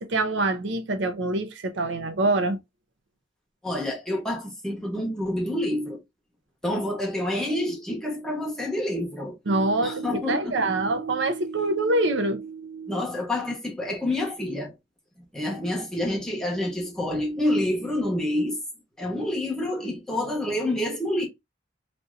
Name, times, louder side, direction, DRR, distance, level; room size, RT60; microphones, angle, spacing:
voice 1, 0.0-2.6 9.5-13.0, right 2 dB, 70° right, 0.6 m, -25 dB
voice 2, 3.6-6.0 6.6-9.3 9.8-10.5 12.9-14.7 15.3-18.6 19.0-21.3, left 1 dB, 5° left, 1.0 m, -28 dB
3.4 x 2.7 x 2.4 m
head